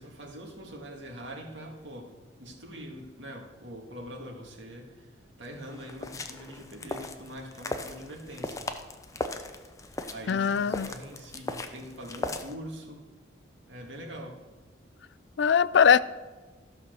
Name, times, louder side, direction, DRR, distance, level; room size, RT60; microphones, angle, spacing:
voice 1, 0.0-5.1 5.4-8.7 9.9-13.0 13.7-14.4, equal, 75° right, 2.0 m, -43 dB
sound 1, 5.4-12.5, left 2 dB, 15° left, 0.5 m, -38 dB
voice 2, 10.3-10.9 15.4-16.0, left 7 dB, 70° left, 0.4 m, -21 dB
13.5 x 5.6 x 6.5 m
head